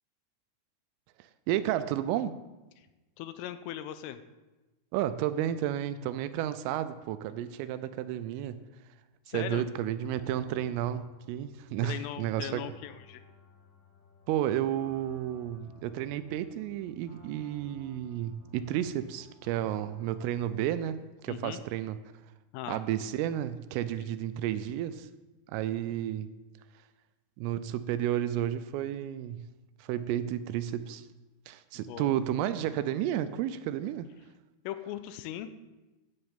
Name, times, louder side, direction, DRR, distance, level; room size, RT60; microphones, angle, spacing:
voice 1, 1.2-2.4 4.9-8.6 9.3-12.6 14.3-22.0 22.7-25.1 25.5-26.3 27.4-29.4 29.8-31.1 31.5-34.1, right 11 dB, 85° right, 12 dB, 3.1 m, -32 dB
voice 2, 3.2-4.2 9.3-9.7 11.8-13.2 21.3-21.6 22.5-23.1 31.9-32.1 34.6-35.6, left 12 dB, 80° left, 10 dB, 3.2 m, -39 dB
sound 1, 10.0-20.6, left 2 dB, 40° left, 3.7 m, -57 dB
13.0 x 6.6 x 8.9 m, 1.1 s
omnidirectional pair, 6.0 m